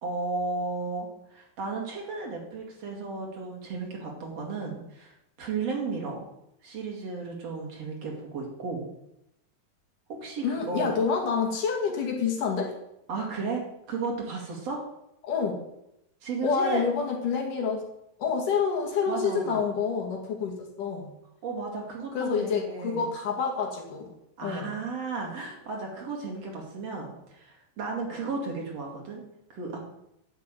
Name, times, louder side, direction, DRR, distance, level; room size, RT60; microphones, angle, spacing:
voice 1, 0.0-6.3 6.6-8.8 10.1-11.1 13.1-14.8 16.2-16.8 19.1-19.6 21.4-23.0 24.4-29.2 29.5-29.8, right 4 dB, 50° right, -1 dB, 3.3 m, -34 dB
voice 2, 10.4-12.7 15.2-15.5 16.4-17.8 18.2-21.1 22.1-24.1 24.4-24.7, left 6 dB, 70° left, 1 dB, 3.8 m, -28 dB
11.5 x 6.7 x 9.1 m, 0.83 s
omnidirectional pair, 3.8 m